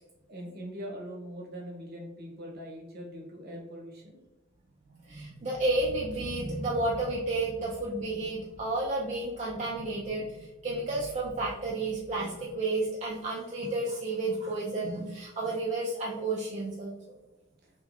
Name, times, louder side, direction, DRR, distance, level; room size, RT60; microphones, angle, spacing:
voice 1, 0.3-4.2, equal, 50° right, 0 dB, 0.9 m, -42 dB
voice 2, 5.1-17.0, right 2 dB, 35° right, -4 dB, 0.4 m, -31 dB
3.4 x 3.1 x 2.3 m, 1.1 s
head